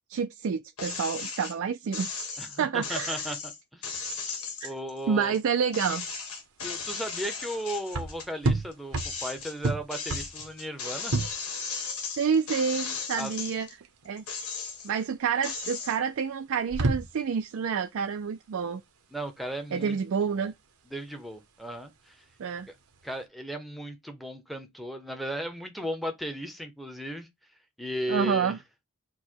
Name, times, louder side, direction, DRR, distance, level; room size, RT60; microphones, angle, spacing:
voice 1, 0.1-2.1 2.6-3.2 4.6-4.7 5.1-6.0 12.2-13.7 14.0-14.2 14.8-18.8 19.7-20.5 22.4-22.7 28.1-28.6, right 6 dB, 65° right, 0.3 m, -28 dB
sound 1, 0.8-1.5 1.9-5.4 5.7-8.3 8.7-13.7 14.2-15.0 15.4-16.0, left 5 dB, 90° left, 1.5 m, -36 dB
voice 2, 2.4-3.9 4.6-5.4 6.6-11.1 13.2-13.3 19.1-20.0 20.3-20.5 20.9-22.2 23.0-27.3 27.8-28.5, equal, ahead, 0.7 m, -36 dB
sound 2, 5.0-23.2, right 2 dB, 80° right, 0.8 m, -34 dB
4.7 x 2.2 x 4.3 m
head